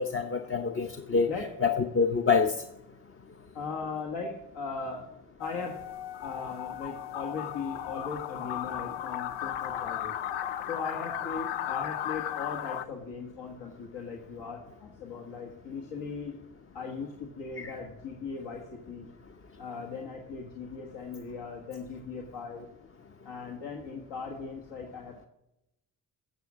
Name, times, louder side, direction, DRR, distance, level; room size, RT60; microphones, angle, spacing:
voice 1, 0.0-1.3 1.6-2.5 17.6-17.7, left 5 dB, 25° left, 6 dB, 0.8 m, -26 dB
voice 2, 3.5-5.1 5.4-5.8 6.2-10.2 10.7-16.4 16.7-19.1 19.6-22.7 23.2-25.3, left 4 dB, 65° left, 0 dB, 1.7 m, -38 dB
sound 1, 5.4-12.8, left 11 dB, 85° left, 0.7 m, -35 dB
10.0 x 6.5 x 7.3 m, 0.87 s
hypercardioid pair, 50°, 46 cm